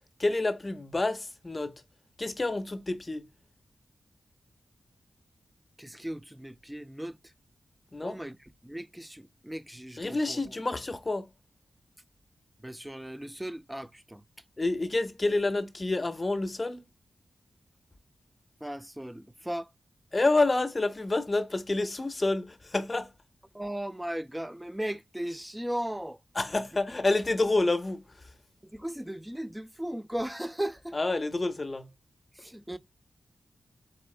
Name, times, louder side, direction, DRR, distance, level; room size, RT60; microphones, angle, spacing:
voice 1, 0.2-1.8 2.2-3.3 7.9-8.2 10.0-11.3 14.6-16.8 20.1-23.1 26.4-28.0 30.9-31.9, left 2 dB, 30° left, 0.7 m, -28 dB
voice 2, 5.8-7.2 8.0-8.4 8.6-10.4 12.6-14.2 18.6-19.7 23.5-26.2 28.6-31.0 32.4-32.8, right 1 dB, 10° right, 0.3 m, -37 dB
4.2 x 3.4 x 3.2 m
cardioid pair, 70°, 0 cm